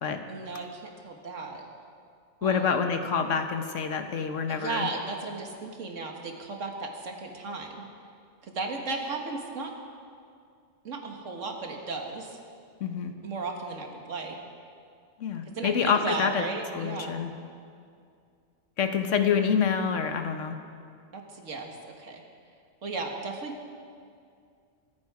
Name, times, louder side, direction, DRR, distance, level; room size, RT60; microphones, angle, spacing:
voice 1, 0.3-1.7 2.4-2.7 4.5-7.9 8.4-9.7 10.8-12.4 13.2-14.4 15.5-17.2 19.0-19.3 21.1-22.2 22.8-23.5, right 3 dB, 85° right, 2 dB, 1.9 m, -35 dB
voice 2, 2.4-4.9 12.8-13.1 15.2-16.4 16.7-17.3 18.8-20.6, left 6 dB, 80° left, 7 dB, 1.3 m, -27 dB
24.5 x 8.8 x 4.9 m, 2.3 s
omnidirectional pair, 1.3 m